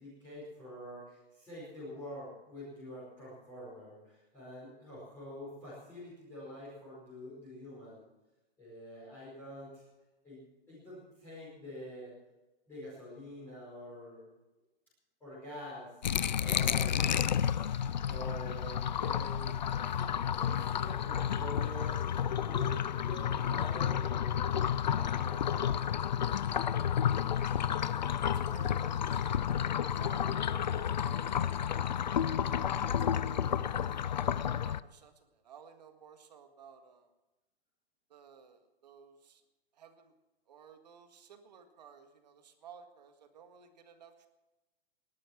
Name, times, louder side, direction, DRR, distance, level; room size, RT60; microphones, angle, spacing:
voice 1, 0.0-8.0 8.6-9.8 10.2-12.1 12.7-14.3 15.2-15.9 16.4-17.0 18.0-19.6 19.8-25.8, left 1 dB, 5° left, -11 dB, 5.1 m, -46 dB
sound 1, 16.0-34.8, left 9 dB, 45° left, 0.4 m, -31 dB
voice 2, 27.7-32.1 32.7-37.1 38.1-39.4 39.7-40.1 40.5-44.3, right 6 dB, 45° right, 7 dB, 1.8 m, -56 dB
19.5 x 11.5 x 6.1 m, 1.1 s
hypercardioid pair, 180°, 31 cm